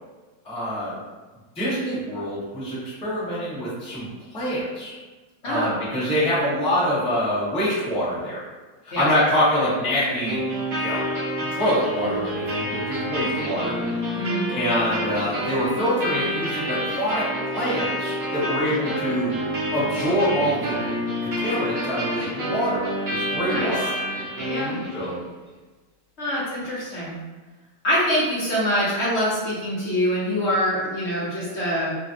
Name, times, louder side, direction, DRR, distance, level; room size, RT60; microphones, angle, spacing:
voice 1, 0.4-1.0 1.6-4.9 5.4-8.4 8.8-10.5 10.8-11.1 11.5-13.8 14.5-17.2 17.5-19.4 19.7-20.8 21.2-22.8 23.1-23.9 24.9-25.2, equal, 5° left, -10 dB, 0.4 m, -25 dB
sound 1, 10.2-25.2, equal, 50° right, 0.8 m, -28 dB
voice 2, 14.1-14.5 23.4-23.7 24.4-24.7 26.2-27.1 27.8-31.9, equal, 50° left, -8 dB, 0.8 m, -24 dB
3.2 x 2.3 x 2.5 m, 1.3 s
omnidirectional pair, 2.1 m